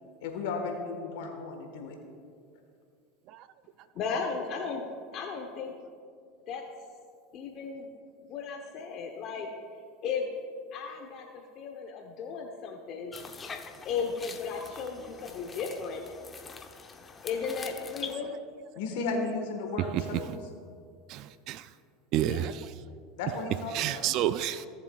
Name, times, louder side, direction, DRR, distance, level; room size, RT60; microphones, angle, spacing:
voice 1, 0.2-2.0 18.7-20.4 23.2-24.1, left 3 dB, 75° left, 1.5 m, -34 dB
voice 2, 3.9-4.8 5.1-5.7 6.5-6.6 7.3-7.9 8.3-9.5 10.0-10.3 10.7-11.3 11.6-13.2 13.8-16.0 17.2-18.4 22.3-22.5, left 5 dB, 50° left, 0.9 m, -35 dB
sound 1, 13.1-18.2, left 5 dB, 25° left, 0.7 m, -44 dB
voice 3, 21.1-21.7 22.1-22.7 23.7-24.7, right 12 dB, 55° right, 0.3 m, -30 dB
17.0 x 7.2 x 2.4 m
supercardioid pair, 105°, 0 cm